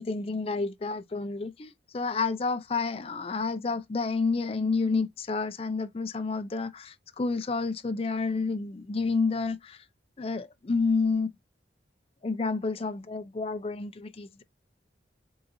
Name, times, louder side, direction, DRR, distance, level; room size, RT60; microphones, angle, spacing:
voice 1, 0.0-9.8 10.2-11.3 12.2-14.4, left 4 dB, 30° left, 0.4 m, -29 dB
4.0 x 3.9 x 2.6 m
head